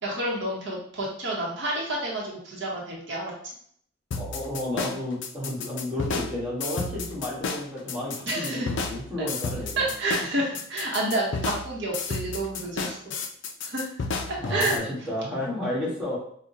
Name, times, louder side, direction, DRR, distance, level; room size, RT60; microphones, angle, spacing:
voice 1, 0.0-3.3 8.3-8.7 9.8-13.0 13.6-13.9 14.3-14.8, right 1 dB, 60° right, -3 dB, 0.8 m, -29 dB
sound 1, 4.1-14.8, left 4 dB, 60° left, 0.4 m, -32 dB
voice 2, 4.1-9.7 14.4-16.2, left 1 dB, 5° right, -6 dB, 1.2 m, -32 dB
5.0 x 2.1 x 2.6 m, 0.63 s
head